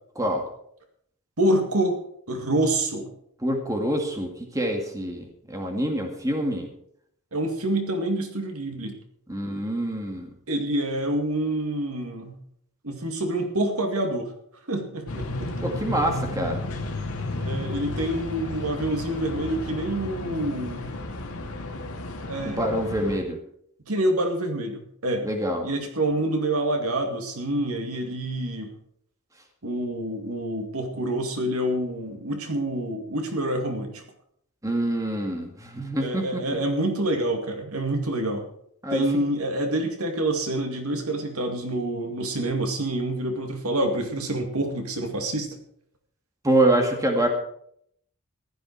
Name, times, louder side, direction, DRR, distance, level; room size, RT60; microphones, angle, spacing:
voice 1, 1.4-2.0 2.3-3.1 7.3-9.0 10.5-12.4 12.8-14.3 14.7-15.5 17.4-20.9 22.3-22.7 23.9-25.3 25.6-28.7 29.6-34.0 36.0-38.4 38.9-45.5, right 1 dB, 70° right, 4 dB, 2.3 m, -27 dB
voice 2, 3.4-6.7 9.3-10.3 15.6-16.6 22.4-23.4 25.2-25.7 34.6-36.4 38.8-39.1 46.4-47.3, right 1 dB, 15° right, 3 dB, 2.0 m, -26 dB
sound 1, 15.1-23.2, left 2 dB, 75° left, 2.0 m, -33 dB
15.5 x 11.5 x 4.7 m, 0.69 s
head